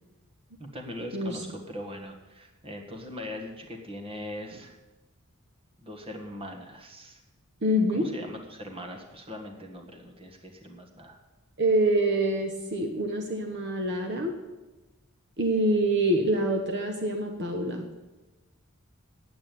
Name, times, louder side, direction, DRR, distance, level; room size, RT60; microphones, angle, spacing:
voice 1, 0.6-4.8 5.8-7.2 7.9-11.2, left 1 dB, 25° right, 4 dB, 1.5 m, -40 dB
voice 2, 7.6-8.1 11.6-14.3 15.4-17.8, right 1 dB, 50° right, 4 dB, 1.1 m, -26 dB
8.7 x 8.5 x 9.2 m, 1.1 s
head